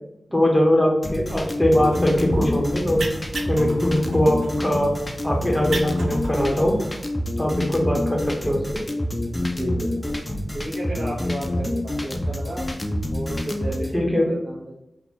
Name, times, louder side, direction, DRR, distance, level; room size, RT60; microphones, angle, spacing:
voice 1, 0.3-3.1 3.5-4.9 5.2-6.8 7.4-8.8 13.9-14.3, left 1 dB, 5° left, -1 dB, 0.9 m, -21 dB
sound 1, 1.0-13.9, left 1 dB, 20° left, 0.4 m, -27 dB
sound 2, 1.8-7.1, right 2 dB, 85° right, 0.4 m, -34 dB
voice 2, 9.3-10.2 10.5-12.7 13.1-14.8, right 1 dB, 60° right, -7 dB, 0.9 m, -33 dB
3.9 x 2.4 x 3.0 m, 0.87 s
wide cardioid pair, 95°, 0 cm